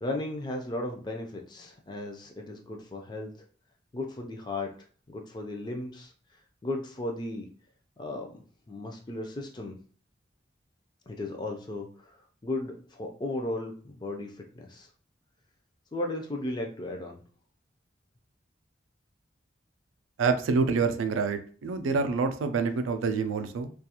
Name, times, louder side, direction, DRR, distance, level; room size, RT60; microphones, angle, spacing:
voice 1, 0.0-3.3 3.9-4.7 5.1-6.1 6.6-7.5 8.0-9.8 11.1-14.9 15.9-17.2, left 2 dB, 20° left, 1 dB, 0.4 m, -35 dB
voice 2, 20.2-23.7, right 4 dB, 90° right, 9 dB, 0.4 m, -27 dB
2.3 x 2.3 x 2.8 m, 0.42 s
head